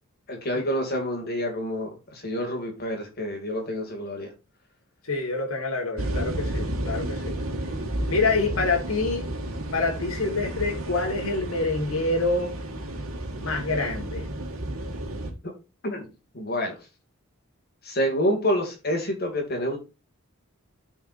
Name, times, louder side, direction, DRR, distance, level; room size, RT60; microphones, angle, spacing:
voice 1, 0.3-4.3 15.8-16.1 16.3-16.8 17.8-19.8, equal, 45° left, 2.5 m, -28 dB
voice 2, 5.0-7.4 8.1-9.3 9.7-12.6 13.4-14.3, left 3 dB, 70° left, 1.8 m, -26 dB
sound 1, 6.0-15.3, right 1 dB, 80° right, 1.8 m, -32 dB
12.5 x 4.7 x 2.6 m
head